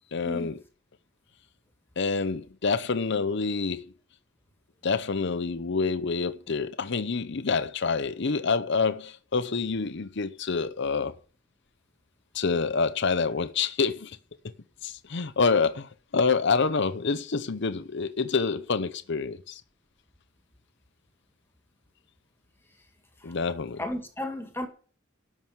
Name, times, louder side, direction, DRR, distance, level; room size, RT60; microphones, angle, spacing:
voice 1, 0.1-0.6 2.0-3.9 4.8-11.1 12.3-14.2 14.8-19.6 23.2-23.8, left 4 dB, 60° left, 0.8 m, -27 dB
voice 2, 23.8-24.7, left 1 dB, 10° left, 2.0 m, -34 dB
13.0 x 6.3 x 9.3 m
head